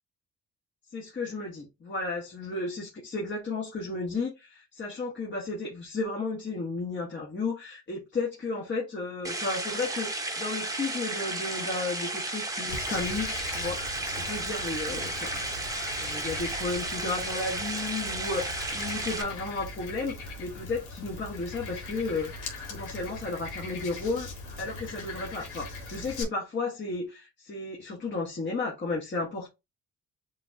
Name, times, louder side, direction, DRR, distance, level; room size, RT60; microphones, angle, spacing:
voice 1, 0.9-15.4 16.0-22.3 22.7-24.3 24.6-29.5, left 3 dB, 40° left, 1.6 m, -33 dB
sound 1, 9.2-19.2, right 2 dB, 10° right, 1.0 m, -33 dB
Frog, 12.7-26.2, left 3 dB, 85° left, 1.8 m, -40 dB
7.5 x 2.9 x 2.2 m
cardioid pair, 90°, 30 cm